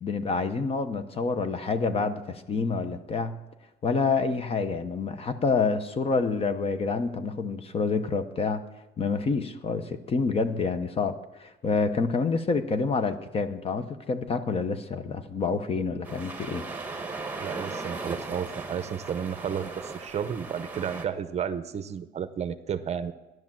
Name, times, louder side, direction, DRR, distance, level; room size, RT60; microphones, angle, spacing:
voice 1, 0.0-3.4 3.8-8.6 9.0-16.6, left 4 dB, 30° left, 11 dB, 0.7 m, -28 dB
sound 1, 16.0-21.0, right 3 dB, 10° right, 1.1 m, -37 dB
voice 2, 17.4-23.1, right 8 dB, 35° right, 11 dB, 0.7 m, -32 dB
14.5 x 11.0 x 7.4 m, 1.1 s
cardioid pair, 175°, 20 cm